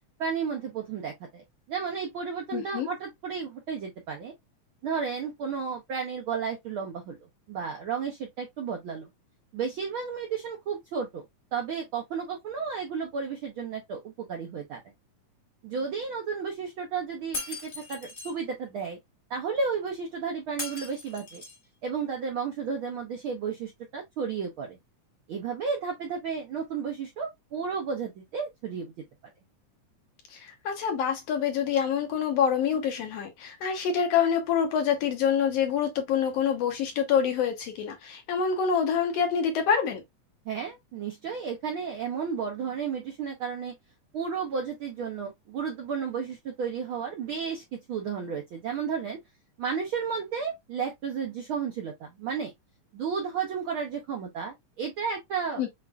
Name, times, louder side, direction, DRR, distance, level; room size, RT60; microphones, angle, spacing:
voice 1, 0.2-1.4 1.7-4.3 4.8-7.2 7.5-9.1 9.5-11.2 11.5-14.8 15.6-19.0 19.3-21.4 21.8-24.8 25.3-28.9 40.4-43.7 44.1-49.2 49.6-52.5 52.9-55.7, right 6 dB, 75° right, 1.2 m, -33 dB
voice 2, 2.5-2.9 30.3-40.0 55.6-55.7, left 7 dB, 70° left, 1.7 m, -26 dB
Shatter, 17.3-18.3 20.6-21.6, left 3 dB, 40° left, 0.9 m, -38 dB
7.1 x 2.5 x 2.2 m
omnidirectional pair, 3.4 m